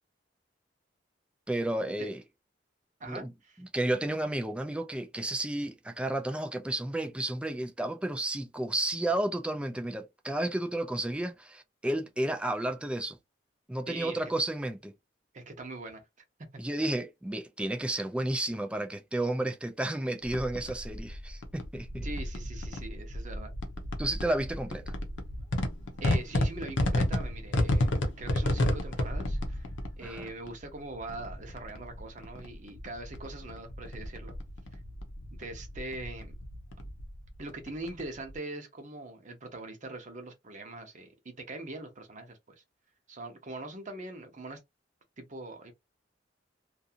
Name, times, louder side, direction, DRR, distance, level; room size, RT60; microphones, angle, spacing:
voice 1, 1.5-2.2 3.1-3.3 3.7-13.2 13.7-14.9 16.6-22.1 24.0-24.9 30.0-30.3, right 1 dB, 5° right, 0.3 m, -32 dB
voice 2, 3.0-3.6 13.9-14.2 15.3-16.0 22.0-23.5 26.0-29.7 30.0-34.3 34.7-34.8 35.4-36.3 37.4-42.6 43.1-44.6 45.2-45.7, right 2 dB, 45° right, 0.7 m, -42 dB
sound 1, 20.2-38.4, left 1 dB, 80° left, 0.7 m, -33 dB
2.6 x 2.4 x 2.7 m
head